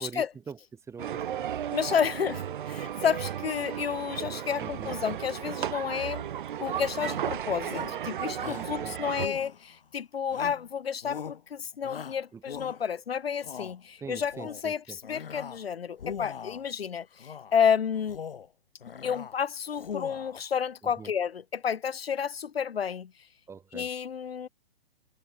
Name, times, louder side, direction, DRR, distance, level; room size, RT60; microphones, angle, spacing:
voice 1, 0.0-1.6 4.6-4.9 8.4-9.0 12.3-12.4 14.0-15.0 20.8-21.1 23.5-23.9, right 6 dB, 10° right, 1.7 m, -43 dB
sound 1, 1.0-9.3, right 10 dB, 55° right, 1.9 m, -34 dB
voice 2, 1.7-6.3 6.6-18.2 19.0-23.1 23.7-24.5, left 7 dB, 85° left, 0.6 m, -31 dB
Shout, 6.9-7.3 7.7-8.0 8.4-8.7 9.2-9.8 10.3-10.7 11.0-11.4 11.8-12.9 13.3-13.7 14.2-14.6 15.0-15.6 15.9-16.7 17.2-17.5 18.0-18.5 18.8-19.3 19.7-20.4, left 7 dB, 65° left, 3.3 m, -41 dB
figure-of-eight pair, 130°, 30 cm